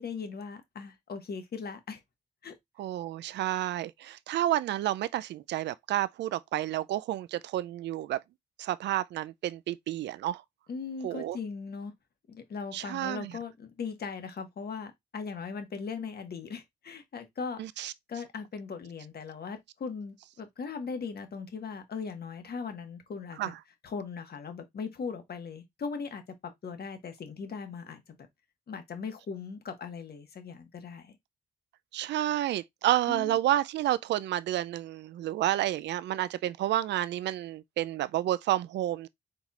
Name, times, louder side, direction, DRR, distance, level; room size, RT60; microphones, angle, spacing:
voice 1, 0.0-2.0 2.4-2.5 10.7-11.9 12.3-23.5 23.8-26.2 26.6-28.2 28.7-31.2 33.1-33.4, left 5 dB, 60° left, 1.4 m, -39 dB
voice 2, 2.8-8.2 8.6-10.4 11.0-11.4 12.7-13.3 17.6-17.9 23.4-23.5 31.9-39.1, right 13 dB, 75° right, 0.4 m, -30 dB
4.6 x 4.0 x 2.4 m
supercardioid pair, 45°, 18 cm